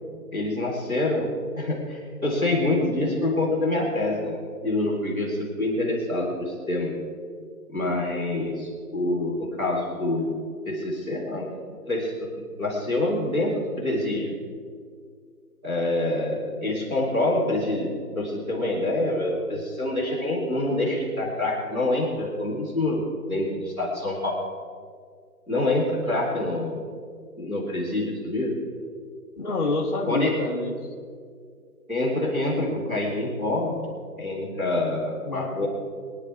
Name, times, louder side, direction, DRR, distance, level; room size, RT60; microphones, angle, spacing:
voice 1, 0.3-7.0 7.7-10.3 10.7-11.5 11.9-12.3 12.6-14.3 15.6-24.4 25.5-26.8 27.4-28.6 30.1-30.4 31.9-33.8 34.2-35.7, left 2 dB, 5° right, -11 dB, 1.9 m, -26 dB
voice 2, 29.4-30.7 35.2-35.7, left 3 dB, 25° left, -8 dB, 1.3 m, -27 dB
23.5 x 10.0 x 3.4 m, 2.1 s
hypercardioid pair, 175°, 48 cm